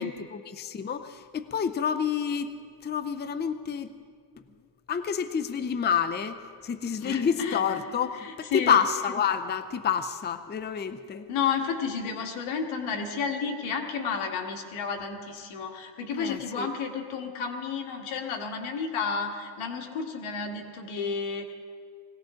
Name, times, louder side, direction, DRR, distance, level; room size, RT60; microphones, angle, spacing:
voice 1, 0.0-2.5 2.8-3.9 4.9-11.3 16.1-16.7, left 7 dB, 20° left, 11 dB, 0.6 m, -28 dB
voice 2, 7.0-7.6 8.2-8.7 11.3-21.5, left 6 dB, 90° left, 2 dB, 2.0 m, -31 dB
20.5 x 17.0 x 3.8 m, 2.1 s
cardioid pair, 120°, 47 cm